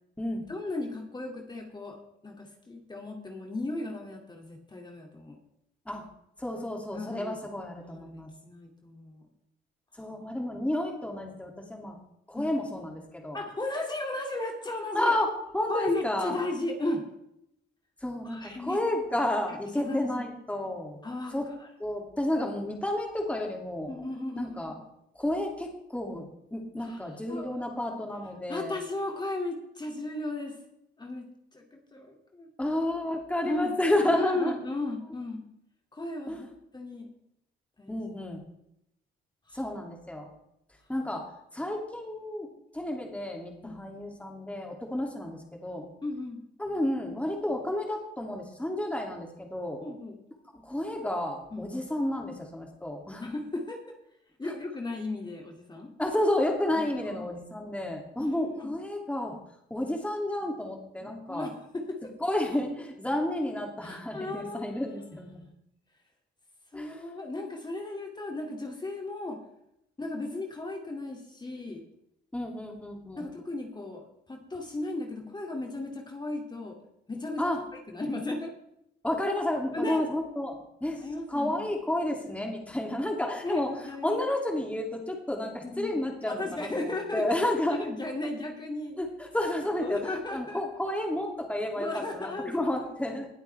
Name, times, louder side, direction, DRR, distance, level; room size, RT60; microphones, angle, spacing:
voice 1, 0.5-5.4 6.9-7.4 7.9-8.1 8.4-9.3 12.4-12.5 13.3-15.1 15.7-17.0 18.2-18.8 19.8-20.3 21.0-21.3 21.6-21.7 23.9-24.8 26.8-27.5 28.5-30.6 31.0-31.3 31.5-32.5 33.4-33.7 34.1-35.4 35.9-36.5 36.7-37.1 37.8-38.0 39.5-39.6 43.6-43.8 44.9-45.1 46.0-46.4 49.8-50.2 51.5-51.8 53.2-53.9 54.4-55.9 56.7-57.3 58.2-58.7 60.4-60.5 61.0-62.1 63.8-64.8 66.7-69.4 70.0-71.8 73.2-76.8 77.1-77.5 77.9-78.5 79.7-80.0 81.0-81.6 83.4-84.2 85.6-87.2 87.7-89.0 89.8-90.6 91.8-92.7 93.1-93.2, left 2 dB, 20° left, 1 dB, 2.5 m, -35 dB
voice 2, 6.4-8.3 10.0-12.0 12.3-13.4 14.9-15.3 15.5-16.4 18.0-21.0 21.3-21.5 21.8-23.9 24.4-24.7 25.1-28.8 32.6-34.6 36.3-36.5 37.9-38.4 39.5-40.3 40.9-45.9 46.6-49.8 50.6-53.2 56.0-59.4 59.7-61.5 62.2-65.4 66.7-67.0 72.3-73.2 77.4-77.6 79.0-81.0 81.3-83.7 84.0-87.8 89.0-93.3, left 1 dB, 5° left, 1 dB, 2.6 m, -31 dB
20.0 x 8.1 x 3.4 m, 0.78 s
cardioid pair, 90°, 20 cm